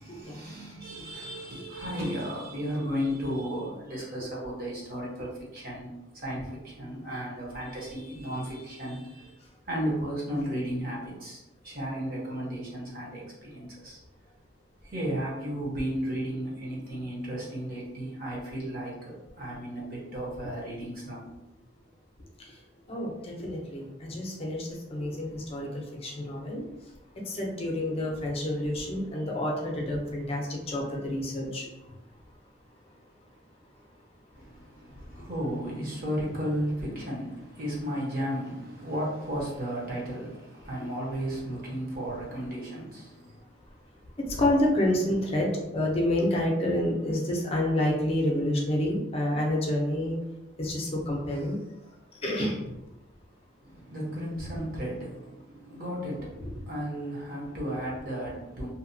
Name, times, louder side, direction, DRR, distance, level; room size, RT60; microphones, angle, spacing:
voice 1, 0.0-5.9 6.1-9.4 9.7-14.0 14.8-21.3 34.3-43.4 53.6-58.7, equal, 50° right, -5 dB, 0.9 m, -34 dB
voice 2, 22.9-25.7 26.0-26.6 27.4-31.7 44.4-50.2 50.6-51.6 52.2-52.6, left 1 dB, 30° left, -1 dB, 0.5 m, -28 dB
2.7 x 2.2 x 2.6 m, 0.96 s
head